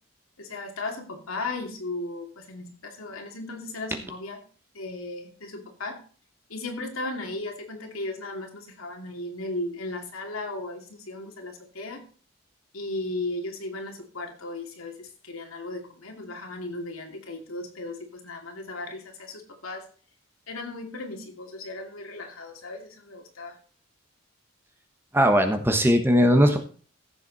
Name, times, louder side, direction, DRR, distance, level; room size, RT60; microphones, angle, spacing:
voice 1, 0.4-4.4 4.7-6.0 6.5-12.0 12.7-19.8 20.5-23.6, left 2 dB, 85° left, 3 dB, 2.6 m, -36 dB
voice 2, 25.1-26.6, equal, 10° right, 6 dB, 1.1 m, -19 dB
15.0 x 7.1 x 4.1 m, 0.41 s
head